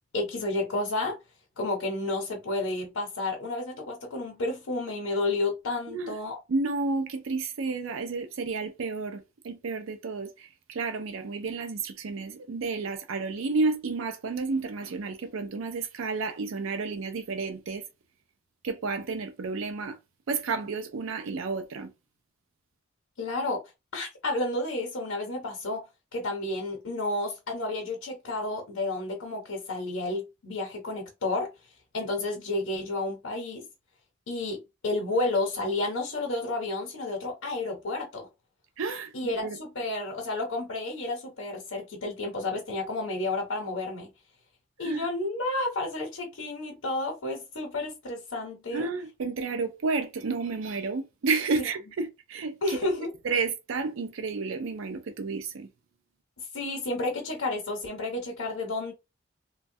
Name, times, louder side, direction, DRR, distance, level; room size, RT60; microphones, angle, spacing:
voice 1, 0.1-1.2 1.6-6.4 23.2-23.6 23.9-25.8 26.1-31.5 31.9-33.7 34.3-38.3 39.1-44.1 44.8-48.9 52.6-53.1 56.5-58.9, left 2 dB, 80° left, 0.7 m, -31 dB
voice 2, 6.5-17.8 18.6-20.0 20.3-21.9 38.8-39.6 44.8-45.0 48.7-52.9 53.2-55.7, right 4 dB, 80° right, 0.4 m, -31 dB
3.1 x 2.2 x 2.6 m
head